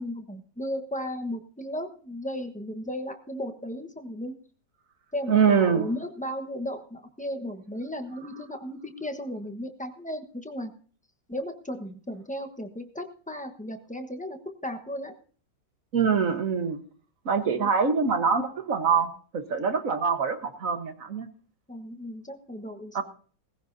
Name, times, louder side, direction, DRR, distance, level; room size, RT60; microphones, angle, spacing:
voice 1, 0.0-4.4 5.1-10.7 11.3-15.1 17.6-17.7 21.7-23.0, equal, 5° left, 5 dB, 0.8 m, -35 dB
voice 2, 5.3-5.9 15.9-16.8 17.2-21.3 22.9-23.0, right 6 dB, 50° right, 8 dB, 1.5 m, -24 dB
18.0 x 15.5 x 2.7 m, 0.42 s
omnidirectional pair, 2.0 m